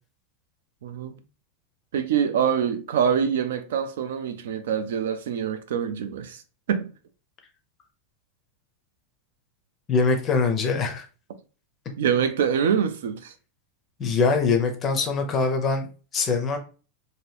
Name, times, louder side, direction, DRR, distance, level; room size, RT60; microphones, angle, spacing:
voice 1, 0.8-1.1 1.9-6.4 6.7-6.9 12.0-13.3, right 7 dB, 85° right, 0.5 m, -25 dB
voice 2, 9.9-11.1 14.0-15.9 16.1-16.6, left 4 dB, 20° left, 0.5 m, -23 dB
2.8 x 2.6 x 3.2 m
supercardioid pair, 175°, 0 cm